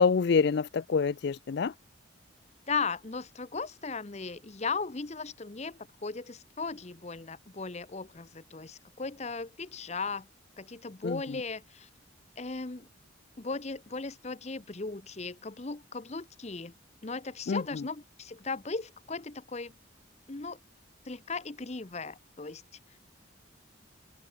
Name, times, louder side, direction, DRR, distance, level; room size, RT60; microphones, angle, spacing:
voice 1, 0.0-1.7 11.0-11.2 17.5-17.8, left 5 dB, 55° left, 0.4 m, -26 dB
voice 2, 2.7-10.3 10.6-11.9 12.4-12.9 13.4-16.7 17.0-19.7 20.3-20.6 21.1-22.6, left 4 dB, 35° left, 0.8 m, -37 dB
open air
head